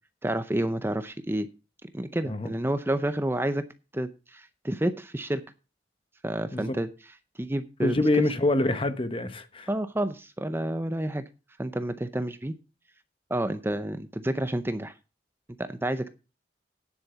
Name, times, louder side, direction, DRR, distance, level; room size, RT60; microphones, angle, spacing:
voice 1, 0.2-1.5 1.8-3.6 3.9-5.4 6.2-6.9 7.4-8.2 9.7-11.2 11.6-12.5 13.3-14.9 15.6-16.2, right 1 dB, 15° right, 0.6 m, -29 dB
voice 2, 7.8-9.7, left 2 dB, 30° left, 1.0 m, -26 dB
9.8 x 7.6 x 5.6 m
head